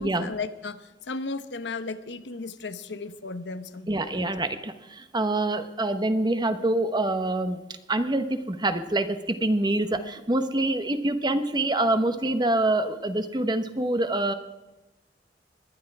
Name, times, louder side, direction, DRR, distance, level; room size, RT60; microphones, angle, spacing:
voice 1, 0.0-4.3, left 3 dB, 90° left, 11 dB, 1.0 m, -35 dB
voice 2, 3.9-7.6 7.9-14.3, right 2 dB, 25° right, 9 dB, 1.0 m, -26 dB
21.5 x 10.0 x 4.8 m, 1.1 s
head